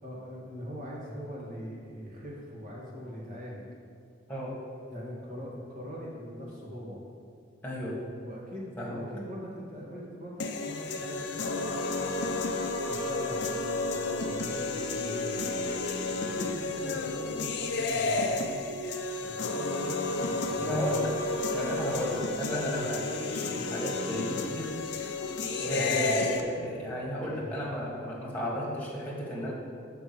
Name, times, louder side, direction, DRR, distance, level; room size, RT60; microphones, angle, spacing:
voice 1, 0.0-3.6 4.9-7.0 8.2-12.3 12.8-14.6 14.9-15.7 16.2-18.6 19.2-21.0 22.7-22.8 23.4-23.7 25.6-26.2 27.2-27.5 28.4-28.6, equal, 45° right, -5 dB, 1.9 m, -42 dB
voice 2, 4.3-4.6 7.6-8.0 8.8-9.0 20.6-21.2 21.5-24.8 25.7-29.5, equal, 10° left, -5 dB, 1.6 m, -33 dB
sound 1, 10.4-26.4, left 3 dB, 60° left, 0.6 m, -31 dB
6.1 x 5.2 x 6.9 m, 2.3 s
head